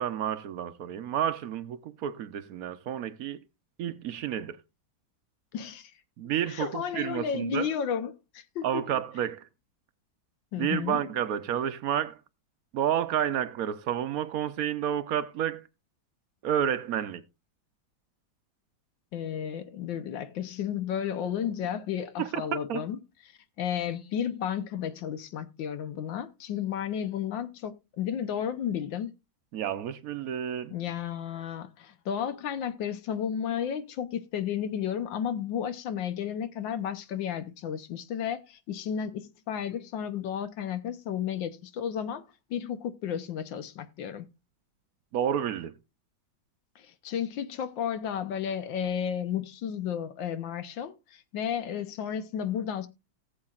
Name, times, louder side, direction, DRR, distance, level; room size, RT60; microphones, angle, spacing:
voice 1, 0.0-3.4 3.8-4.6 6.2-7.7 8.6-9.5 10.6-12.2 12.7-15.7 16.4-17.2 22.2-22.8 29.5-30.7 45.1-45.7, right 9 dB, 65° right, 0.9 m, -30 dB
voice 2, 5.5-5.9 6.5-8.8 10.5-11.0 19.1-23.0 23.6-29.1 30.7-42.2 42.5-44.3 46.8-52.9, left 8 dB, 75° left, 1.5 m, -33 dB
18.5 x 7.7 x 2.4 m
omnidirectional pair, 2.1 m